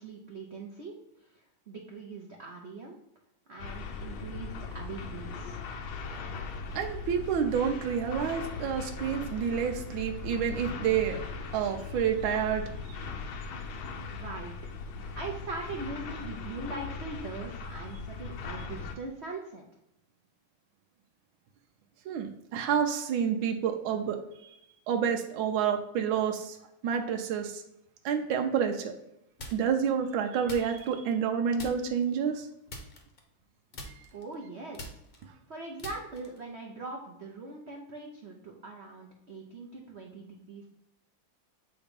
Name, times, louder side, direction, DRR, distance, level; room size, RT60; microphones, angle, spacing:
voice 1, 0.0-1.4 1.7-3.0 3.5-5.6 14.1-14.6 15.2-19.6 34.1-35.0 35.5-40.7, right 3 dB, 60° right, 0 dB, 0.7 m, -41 dB
sound 1, 3.6-19.0, left 4 dB, 90° left, 1.5 m, -39 dB
voice 2, 6.7-11.2 11.5-13.0 18.6-18.7 22.0-24.6 24.9-26.6 26.8-27.6 28.0-28.9 29.5-32.5, right 7 dB, 80° right, 4 dB, 1.4 m, -29 dB
sound 2, 29.4-29.9 30.5-31.3 31.6-32.1 32.7-33.5 33.7-36.5, left 1 dB, 40° left, 0.9 m, -44 dB
8.1 x 3.0 x 5.1 m, 0.85 s
omnidirectional pair, 2.2 m